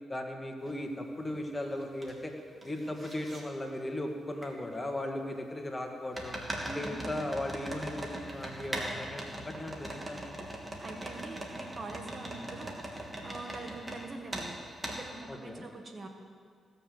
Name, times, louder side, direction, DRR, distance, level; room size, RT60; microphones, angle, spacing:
voice 1, 0.1-2.3 2.6-6.4 6.6-10.5 15.3-15.7, left 1 dB, 25° left, 3 dB, 2.0 m, -37 dB
sound 1, 0.7-0.8 1.3-2.1 2.4-3.4 4.4-4.5 6.1-14.0 14.3-14.5 14.8-15.0, right 1 dB, 30° right, 2.9 m, -40 dB
voice 2, 6.7-7.2 10.8-14.6 14.8-16.1, right 2 dB, 45° right, 4 dB, 1.8 m, -44 dB
17.0 x 6.9 x 8.0 m, 2.1 s
supercardioid pair, 55°, 0 cm